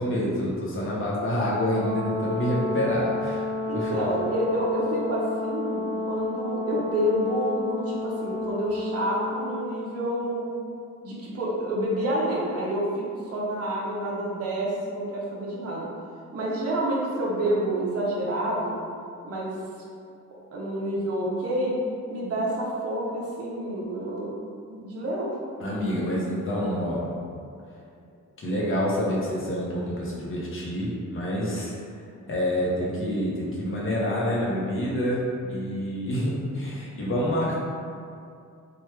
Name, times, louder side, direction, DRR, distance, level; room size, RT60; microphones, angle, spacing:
voice 1, 0.0-3.5 3.7-4.0 25.6-27.1 28.4-31.7 32.3-35.2 35.5-37.6, equal, 45° left, -5 dB, 0.7 m, -27 dB
Brass instrument, 1.7-9.7, left 2 dB, 20° left, 0.3 m, -30 dB
voice 2, 3.7-10.5 11.0-15.9 16.3-18.8 19.2-19.5 20.5-21.7 22.1-24.3 24.7-25.3, right 1 dB, 50° right, -5 dB, 0.7 m, -28 dB
3.0 x 2.2 x 3.2 m, 2.4 s
wide cardioid pair, 165°, 31 cm